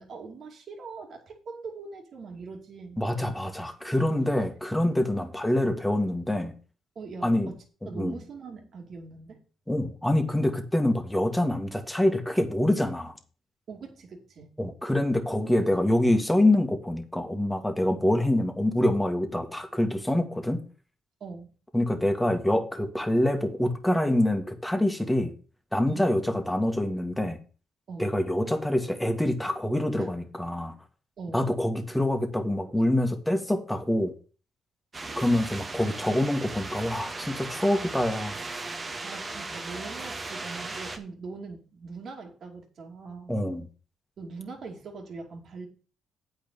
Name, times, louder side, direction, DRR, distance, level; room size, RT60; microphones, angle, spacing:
voice 1, 0.0-3.0 5.1-5.2 7.0-9.4 13.7-14.5 21.2-21.5 25.9-26.1 27.9-28.1 30.0-30.1 31.2-31.5 35.1-35.3 39.0-43.4 44.2-45.7, right 4 dB, 55° right, 2 dB, 2.5 m, -42 dB
voice 2, 3.0-6.5 7.2-7.5 7.8-8.2 9.7-13.2 14.6-20.6 21.7-25.3 25.7-27.4 28.0-30.7 31.3-34.1 35.2-38.4 43.3-43.7, left 1 dB, 5° left, 6 dB, 1.8 m, -25 dB
sound 1, 34.9-41.0, right 3 dB, 30° right, 1.5 m, -37 dB
8.7 x 5.2 x 6.9 m, 0.37 s
cardioid pair, 90°, 0 cm